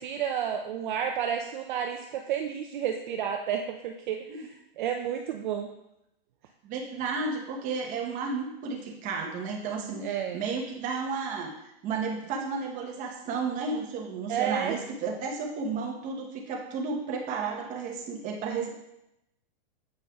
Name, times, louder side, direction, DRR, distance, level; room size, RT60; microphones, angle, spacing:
voice 1, 0.0-5.7 10.0-10.4 14.3-14.8, right 8 dB, 50° right, 4 dB, 0.5 m, -31 dB
voice 2, 6.6-11.5 11.8-18.7, right 4 dB, 25° right, 1 dB, 0.9 m, -32 dB
7.7 x 5.2 x 2.3 m, 0.86 s
hypercardioid pair, 145°, 31 cm